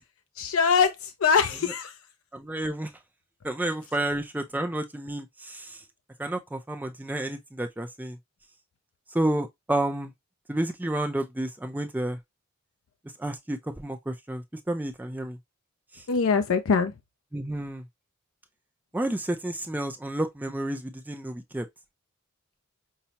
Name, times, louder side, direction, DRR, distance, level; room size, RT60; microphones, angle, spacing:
voice 1, 0.4-2.0 16.1-16.9, left 5 dB, 75° left, 0.4 m, -23 dB
voice 2, 2.3-2.9 3.4-5.8 6.2-8.2 9.1-10.1 10.5-12.2 13.2-15.4 15.9-16.0 17.3-17.8 18.9-21.7, right 1 dB, 10° right, 0.4 m, -30 dB
5.6 x 2.0 x 2.8 m
head